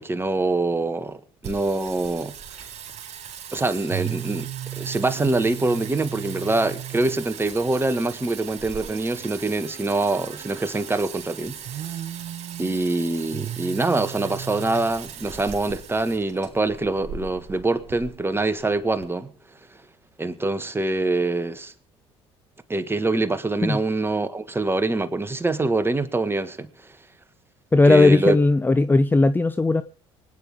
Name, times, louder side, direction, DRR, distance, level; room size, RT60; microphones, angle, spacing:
voice 1, 0.0-2.3 3.5-4.5 4.8-11.8 12.6-19.3 20.2-21.7 22.7-26.9 27.8-28.4, right 2 dB, 15° right, 1.7 m, -24 dB
Singing, 1.4-19.0, right 9 dB, 55° right, 3.8 m, -36 dB
voice 2, 27.7-29.8, left 2 dB, 15° left, 0.8 m, -17 dB
24.5 x 9.5 x 3.7 m
hypercardioid pair, 65°, 14 cm